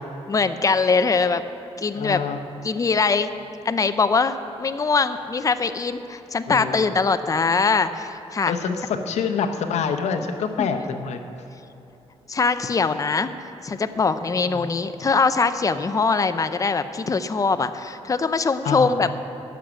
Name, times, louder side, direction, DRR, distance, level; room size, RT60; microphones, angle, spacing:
voice 1, 0.3-1.4 1.8-2.2 2.6-3.3 3.6-8.5 10.6-10.7 12.3-13.3 13.6-19.1, left 4 dB, 30° left, 11 dB, 0.6 m, -22 dB
voice 2, 1.9-2.4 6.5-6.8 8.5-11.2 14.5-14.7 18.6-19.0, left 6 dB, 85° left, 6 dB, 0.9 m, -26 dB
10.5 x 7.2 x 8.9 m, 2.9 s
cardioid pair, 95°, 11 cm